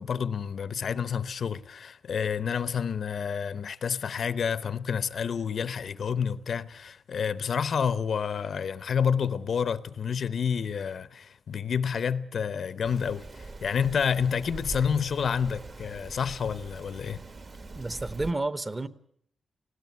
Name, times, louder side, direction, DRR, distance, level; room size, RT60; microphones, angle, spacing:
voice 1, 0.0-17.2, left 7 dB, 60° left, 0.8 m, -29 dB
Rain, 12.8-18.3, right 3 dB, 35° right, 1.2 m, -43 dB
voice 2, 17.8-18.9, right 2 dB, 20° right, 0.9 m, -30 dB
19.5 x 17.0 x 9.4 m
wide cardioid pair, 140°, 0 cm